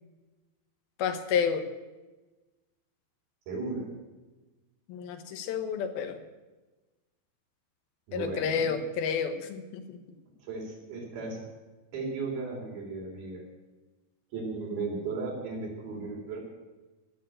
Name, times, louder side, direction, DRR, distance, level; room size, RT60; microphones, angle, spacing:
voice 1, 1.0-1.7 4.9-6.2 8.1-10.0, left 7 dB, 90° left, 7 dB, 3.1 m, -30 dB
voice 2, 3.5-3.9 8.1-8.7 10.4-11.5 11.9-13.4 14.3-16.4, right 3 dB, 80° right, -1 dB, 5.5 m, -35 dB
17.0 x 7.3 x 8.9 m, 1.2 s
omnidirectional pair, 4.2 m